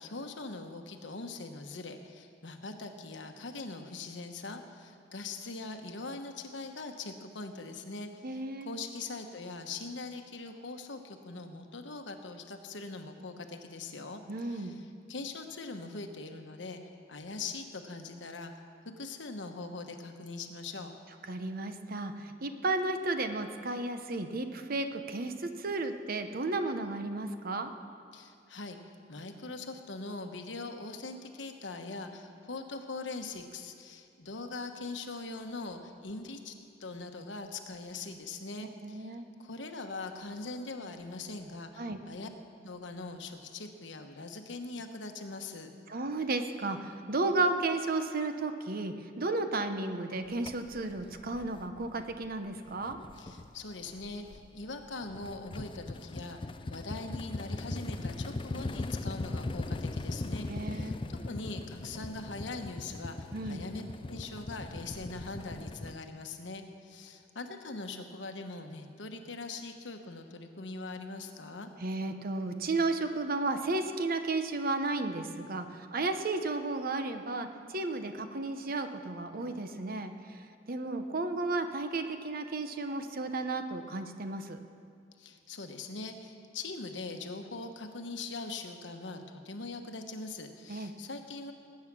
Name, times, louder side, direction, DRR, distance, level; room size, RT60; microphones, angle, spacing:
voice 1, 0.0-16.8 17.1-18.5 18.8-20.9 28.1-36.5 36.8-42.3 42.6-45.7 53.2-56.4 56.7-60.9 61.3-71.7 85.2-91.5, left 3 dB, 80° left, 5 dB, 1.2 m, -42 dB
voice 2, 8.2-8.7 14.3-14.8 21.3-27.7 38.8-39.2 41.8-42.0 45.9-53.0 60.5-60.9 63.3-63.6 71.8-80.4 80.7-84.6 90.7-90.9, right 2 dB, 55° right, 8 dB, 0.9 m, -33 dB
sound 1, 50.4-52.4 52.7-65.9, left 2 dB, 25° left, 0.4 m, -39 dB
19.5 x 8.7 x 6.1 m, 2.5 s
head